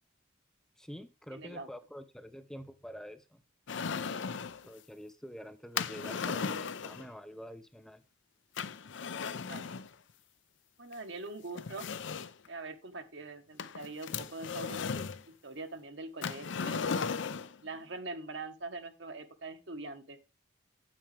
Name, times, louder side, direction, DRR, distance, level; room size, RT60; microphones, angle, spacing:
voice 1, 0.8-3.4 4.7-8.0, equal, 5° left, 9 dB, 0.5 m, -47 dB
voice 2, 1.3-1.7 9.5-9.6 10.8-11.9 12.5-15.1 15.4-16.9 17.6-20.2, right 3 dB, 60° right, 7 dB, 1.2 m, -43 dB
sound 1, 3.7-4.6 5.8-7.1 8.6-9.9 10.9-11.0 11.6-12.5 13.6-15.2 16.2-17.6, left 5 dB, 65° left, 0.5 m, -36 dB
8.9 x 8.6 x 3.3 m, 0.28 s
head